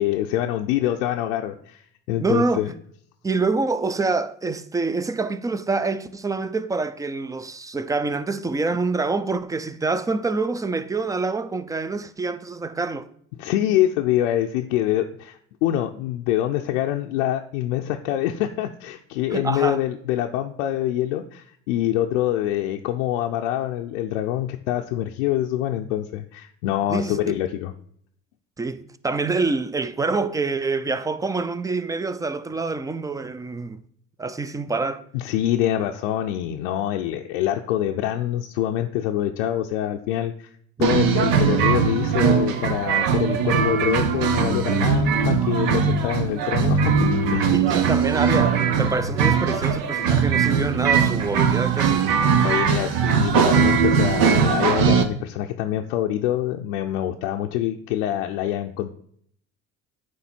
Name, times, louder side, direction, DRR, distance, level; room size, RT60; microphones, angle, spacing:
voice 1, 0.0-2.7 13.4-27.7 35.1-40.5 40.8-46.9 47.3-47.5 52.4-58.9, left 12 dB, 90° left, 0.5 m, -25 dB
voice 2, 2.2-2.7 3.2-13.1 19.3-19.8 26.9-27.3 28.6-33.8 34.2-35.0 47.5-52.0, right 3 dB, 10° right, 0.4 m, -26 dB
sound 1, 40.8-55.0, right 6 dB, 70° right, 0.9 m, -20 dB
9.2 x 3.2 x 4.3 m
supercardioid pair, 75°, 36 cm